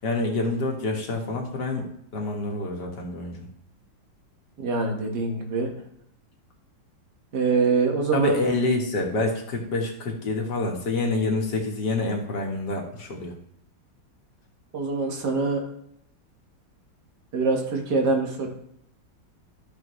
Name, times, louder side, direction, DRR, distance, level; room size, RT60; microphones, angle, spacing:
voice 1, 0.0-1.9 2.1-3.5 8.1-13.3, left 2 dB, 60° left, 0 dB, 2.2 m, -27 dB
voice 2, 4.6-5.7 7.3-8.4 14.7-15.6 17.3-18.5, right 4 dB, 60° right, 2 dB, 2.2 m, -24 dB
13.0 x 6.5 x 3.2 m, 0.72 s
omnidirectional pair, 2.0 m